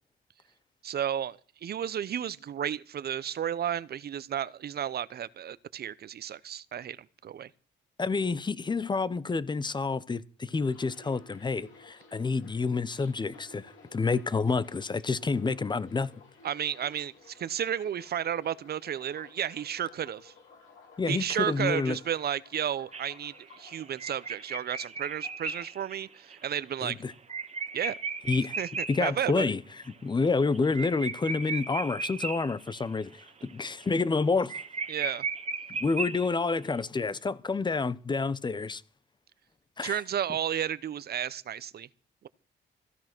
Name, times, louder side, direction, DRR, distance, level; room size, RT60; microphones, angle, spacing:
voice 1, 0.8-7.5 16.4-20.3 21.1-27.0 27.7-28.0 28.6-29.5 34.9-35.3 39.8-41.9 42.2-42.3, right 9 dB, 55° right, 0.8 m, -33 dB
voice 2, 8.0-16.1 21.0-22.0 26.8-27.1 28.3-28.6 28.9-29.6 30.0-34.6 35.7-38.8 39.8-40.0, left 4 dB, 20° left, 0.8 m, -29 dB
sound 1, 10.6-26.6 26.9-27.8 28.0-28.4, left 3 dB, 85° left, 7.4 m, -55 dB
sound 2, 22.9-29.1 29.5-29.6 29.8-29.9 30.2-32.8 33.2-33.5 33.8-33.9 34.2-34.3 34.5-36.6, right 4 dB, 35° right, 1.6 m, -36 dB
15.5 x 10.5 x 6.1 m
cardioid pair, 90°, 20 cm